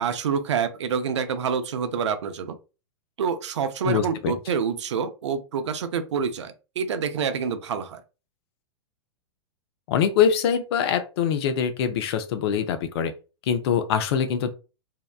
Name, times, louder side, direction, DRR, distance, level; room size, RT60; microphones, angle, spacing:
voice 1, 0.0-2.6 3.2-8.0, right 6 dB, 80° right, 10 dB, 0.5 m, -27 dB
voice 2, 3.8-4.3 9.9-13.1 13.5-14.5, left 8 dB, 60° left, 10 dB, 0.5 m, -23 dB
2.8 x 2.1 x 2.3 m, 0.32 s
hypercardioid pair, 110°, 15 cm